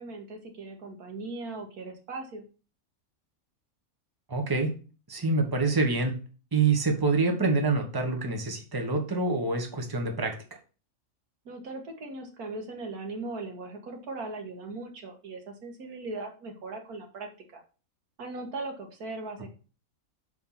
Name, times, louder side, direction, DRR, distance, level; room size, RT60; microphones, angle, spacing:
voice 1, 0.0-2.4 11.5-17.6 18.2-19.5, right 3 dB, 85° right, 3 dB, 1.9 m, -39 dB
voice 2, 4.3-4.8 5.1-6.2 6.5-10.4, right 3 dB, 15° right, 3 dB, 1.3 m, -26 dB
6.3 x 4.6 x 5.7 m, 0.35 s
omnidirectional pair, 1.5 m